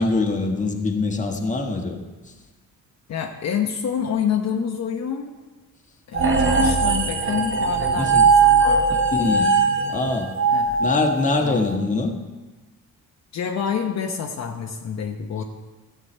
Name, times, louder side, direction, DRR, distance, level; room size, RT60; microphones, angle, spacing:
voice 1, 0.0-2.0 2.2-2.3 7.9-8.2 9.1-9.5 9.9-10.3 10.8-12.1, left 3 dB, 20° left, 2 dB, 1.4 m, -23 dB
voice 2, 3.1-5.3 6.1-9.0 10.5-10.8 11.4-11.6 13.3-15.4, left 7 dB, 50° left, 2 dB, 0.9 m, -27 dB
sound 1, 6.1-11.6, right 4 dB, 40° right, 1.3 m, -19 dB
14.0 x 8.2 x 4.4 m, 1.2 s
cardioid pair, 120°, 33 cm